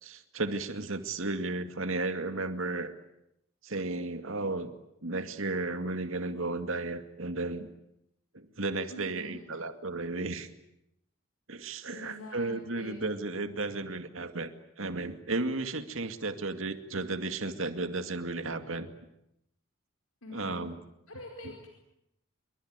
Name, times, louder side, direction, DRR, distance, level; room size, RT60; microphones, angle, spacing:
voice 1, 0.0-2.9 3.6-4.7 5.0-7.7 8.3-10.5 11.5-14.5 14.8-18.9 20.3-20.8, right 2 dB, 70° right, 8 dB, 2.3 m, -34 dB
voice 2, 8.9-9.4 11.9-13.0 20.2-20.7 21.1-21.8, left 2 dB, 80° left, 2 dB, 4.9 m, -45 dB
28.0 x 24.0 x 9.0 m, 0.82 s
head